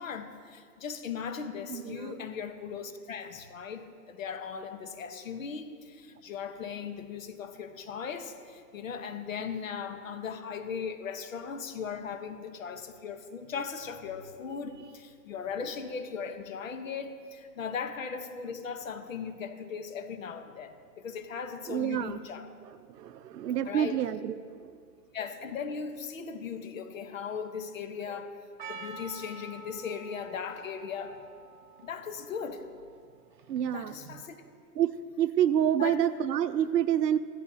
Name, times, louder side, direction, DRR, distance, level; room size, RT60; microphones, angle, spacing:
voice 1, 0.0-22.5 23.6-24.0 25.1-28.3 28.7-31.2 31.8-32.6 33.7-34.4 35.8-36.0, left 6 dB, 50° left, 7 dB, 1.1 m, -38 dB
voice 2, 1.7-2.2 21.7-22.2 22.9-24.7 33.5-33.9 34.8-37.2, right 10 dB, 70° right, 13 dB, 0.7 m, -28 dB
Percussion, 28.6-33.8, right 4 dB, 30° right, 0.7 m, -48 dB
16.0 x 11.0 x 2.8 m, 2.1 s
hypercardioid pair, 175°, 49 cm